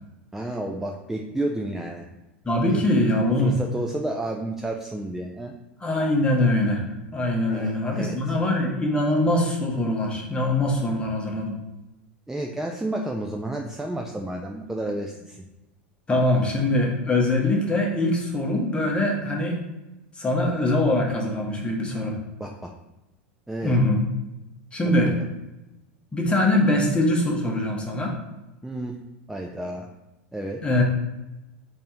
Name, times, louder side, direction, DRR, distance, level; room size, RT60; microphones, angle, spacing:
voice 1, 0.3-2.1 2.6-2.8 3.4-5.5 7.5-8.4 12.3-15.4 22.4-22.7 23.5-23.8 24.8-25.0 28.6-28.9 29.3-29.9 30.3-30.6, right 1 dB, 5° right, 1 dB, 0.4 m, -31 dB
voice 2, 2.4-3.6 5.8-6.9 7.1-11.6 16.1-19.6 20.2-22.2 23.6-24.1 24.7-25.1 26.1-28.1 30.6-30.8, left 1 dB, 15° left, 0 dB, 1.0 m, -23 dB
4.1 x 2.7 x 3.6 m, 0.98 s
hypercardioid pair, 95°, 6 cm